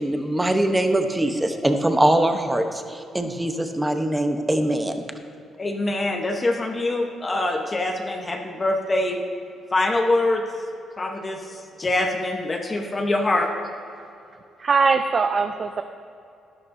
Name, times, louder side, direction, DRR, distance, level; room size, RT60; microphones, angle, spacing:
voice 1, 0.0-4.9, right 1 dB, 10° right, 6 dB, 0.8 m, -22 dB
voice 2, 5.6-9.2 9.7-10.4 11.0-13.5, left 2 dB, 25° left, 2 dB, 0.9 m, -24 dB
voice 3, 14.6-15.8, right 4 dB, 45° right, 7 dB, 0.5 m, -21 dB
12.0 x 11.5 x 2.6 m, 2.6 s
cardioid pair, 90°, 0 cm